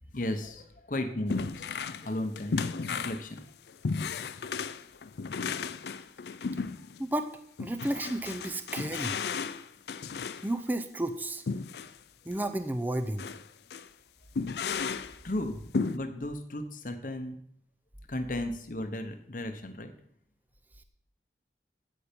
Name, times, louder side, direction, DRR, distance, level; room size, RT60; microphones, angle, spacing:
voice 1, 0.1-3.4 15.2-17.4 18.1-19.9, left 1 dB, 45° left, 7 dB, 0.9 m, -35 dB
sound 1, 1.3-2.1 2.4-7.1 7.6-10.5 11.5-12.0 12.3-12.4 13.2-13.4 13.7-13.9 14.4-15.2 15.7-16.0, left 5 dB, 65° left, 0.4 m, -34 dB
voice 2, 7.6-9.2 10.4-11.4 12.3-13.2, right 1 dB, 10° right, 8 dB, 0.5 m, -32 dB
8.9 x 8.5 x 5.2 m, 0.66 s
head